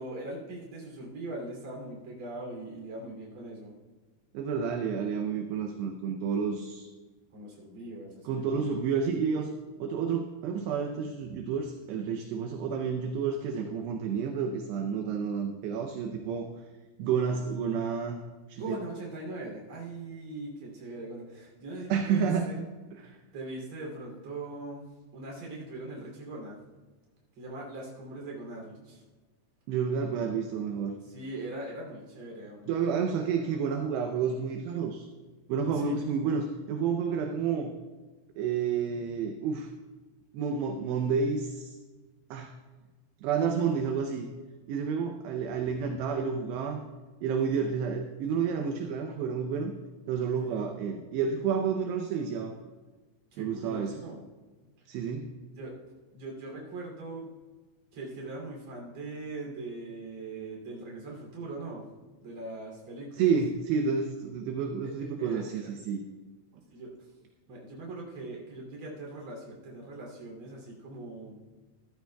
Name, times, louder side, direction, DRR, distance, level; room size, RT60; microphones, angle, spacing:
voice 1, 0.0-3.8 7.3-8.6 18.5-22.6 23.3-26.6 27.4-29.0 31.0-32.7 35.7-36.0 50.5-50.6 53.3-54.2 55.6-55.7 56.1-57.3 57.9-61.8 62.2-63.3 64.8-65.7 66.7-66.9 67.5-71.4, right 2 dB, 35° right, -2 dB, 3.1 m, -41 dB
voice 2, 4.3-6.9 8.3-9.5 9.8-16.5 17.0-18.2 18.5-18.8 21.9-22.6 22.9-23.2 29.7-31.0 32.7-35.1 35.5-37.7 38.4-39.7 40.3-41.8 42.3-42.5 43.2-44.3 44.7-46.8 47.2-49.7 50.1-52.5 53.4-54.0 54.9-55.3 63.2-66.0, right 6 dB, 80° right, 4 dB, 2.6 m, -30 dB
15.0 x 13.5 x 2.3 m, 1.3 s
omnidirectional pair, 5.4 m